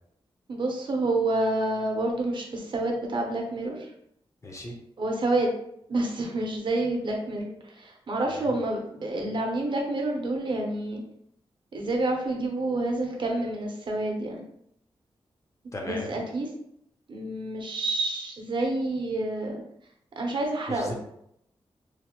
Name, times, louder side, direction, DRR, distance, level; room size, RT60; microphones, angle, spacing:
voice 1, 0.5-3.9 5.0-5.5 5.9-11.0 11.7-14.4 15.8-16.5 17.1-19.6 20.2-20.9, right 2 dB, 55° right, 0 dB, 0.7 m, -28 dB
voice 2, 4.4-4.7 8.3-8.6 15.7-16.2 20.7-20.9, left 1 dB, 30° left, 0 dB, 0.6 m, -37 dB
3.1 x 2.0 x 2.9 m, 0.74 s
wide cardioid pair, 105°, 10 cm